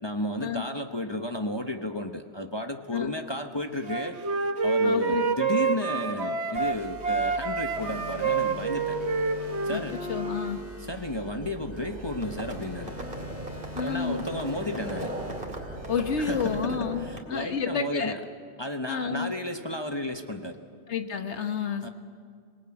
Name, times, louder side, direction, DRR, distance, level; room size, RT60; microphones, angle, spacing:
voice 1, 0.0-4.2 4.6-9.0 9.6-10.0 10.8-13.0 13.8-15.1 16.2-18.2 18.6-20.6 21.8-21.9, left 1 dB, 25° left, 5 dB, 1.0 m, -33 dB
Wind instrument woodwind instrument, 3.9-6.8 7.0-10.5, right 4 dB, 75° right, 1.7 m, -27 dB
voice 2, 4.8-5.3 9.7-9.8 10.1-10.6 13.8-14.2 15.9-18.1 18.9-19.3 20.9-21.9, left 6 dB, 90° left, 7 dB, 1.4 m, -30 dB
sound 1, 6.6-16.6, right 1 dB, 15° right, 5.1 m, -43 dB
Livestock farm animals working animals, 11.4-17.2, right 1 dB, 50° right, 2.6 m, -38 dB
26.5 x 19.0 x 8.7 m, 2.1 s
omnidirectional pair, 1.1 m